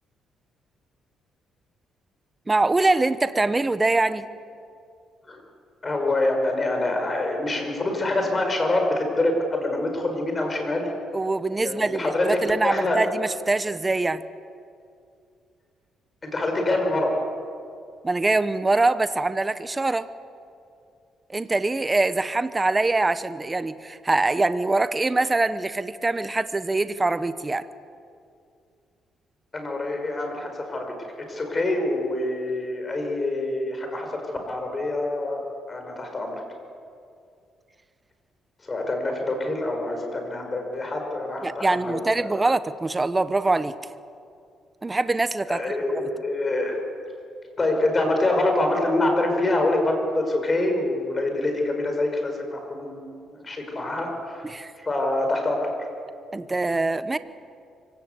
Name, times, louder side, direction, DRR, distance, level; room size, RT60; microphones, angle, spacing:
voice 1, 2.5-4.3 11.1-14.2 18.0-20.1 21.3-27.7 41.4-43.7 44.8-45.6 45.9-46.1 54.4-54.7 56.3-57.2, right 2 dB, 20° right, 13 dB, 1.0 m, -23 dB
voice 2, 5.8-10.9 11.6-13.0 16.2-17.2 29.5-34.2 34.5-36.4 38.6-42.4 45.5-46.8 47.6-53.1 53.3-54.4 54.8-55.7, left 2 dB, 30° left, 3 dB, 5.6 m, -25 dB
25.0 x 17.5 x 8.2 m, 2.4 s
cardioid pair, 90°, 0 cm